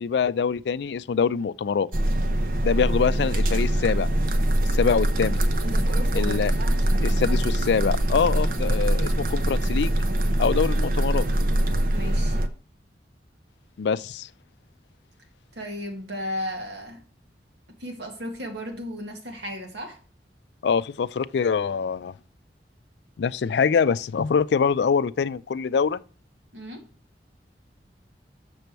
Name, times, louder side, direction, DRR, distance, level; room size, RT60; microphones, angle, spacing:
voice 1, 0.0-1.9 2.6-4.1 4.7-5.4 6.1-6.5 7.0-9.9 10.4-11.3 13.8-14.3 20.6-22.1 23.2-26.0, left 6 dB, 75° left, 0.4 m, -24 dB
sound 1, 1.9-12.5, right 1 dB, 55° right, 0.6 m, -23 dB
voice 2, 5.6-7.5 11.9-12.4 15.5-17.0 17.8-20.0 26.5-26.9, equal, 85° right, 1.8 m, -35 dB
6.9 x 6.7 x 4.5 m
head